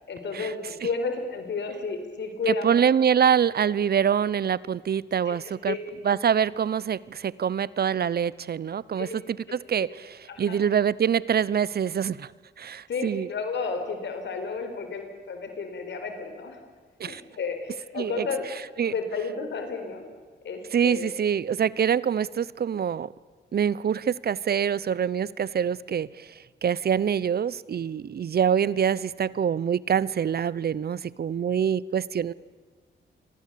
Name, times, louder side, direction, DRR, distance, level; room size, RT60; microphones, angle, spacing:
voice 1, 0.1-2.9 5.3-5.8 9.0-9.1 9.5-9.6 10.3-10.6 12.9-16.6 17.0-18.5 18.8-20.0 20.4-21.1, left 4 dB, 75° left, 6 dB, 4.7 m, -32 dB
voice 2, 2.5-5.8 6.0-12.3 12.6-13.3 17.0-17.2 18.0-18.2 18.8-18.9 20.7-23.1 23.5-26.3 26.6-32.3, right 8 dB, 55° right, 21 dB, 0.8 m, -25 dB
28.5 x 22.5 x 8.5 m, 1.5 s
cardioid pair, 70°, 19 cm